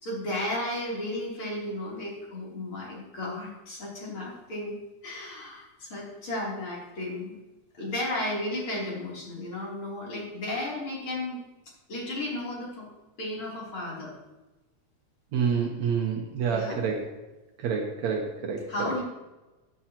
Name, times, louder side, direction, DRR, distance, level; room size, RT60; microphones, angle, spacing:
voice 1, 0.0-4.8 5.0-7.4 7.7-11.4 11.9-12.9 13.2-14.1 16.5-16.8 18.7-19.0, left 1 dB, 45° left, -5 dB, 4.0 m, -34 dB
voice 2, 15.3-17.1 17.6-18.6, right 6 dB, 70° right, 1 dB, 2.2 m, -28 dB
14.5 x 8.9 x 2.9 m, 1.1 s
omnidirectional pair, 3.3 m